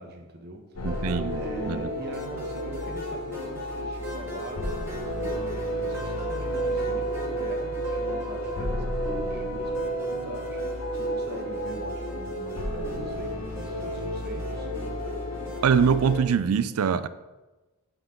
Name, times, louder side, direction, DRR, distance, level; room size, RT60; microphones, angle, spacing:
voice 1, 0.0-4.8 5.2-14.7, right 1 dB, 50° right, 4 dB, 0.9 m, -42 dB
sound 1, 0.8-16.2, equal, 85° left, 1.1 m, -31 dB
sound 2, 0.8-16.1, right 1 dB, 10° right, 1.6 m, -42 dB
voice 2, 0.8-1.4 1.7-1.8 15.6-17.1, right 6 dB, 80° right, 14 dB, 0.4 m, -23 dB
7.0 x 5.8 x 3.7 m, 1.1 s
head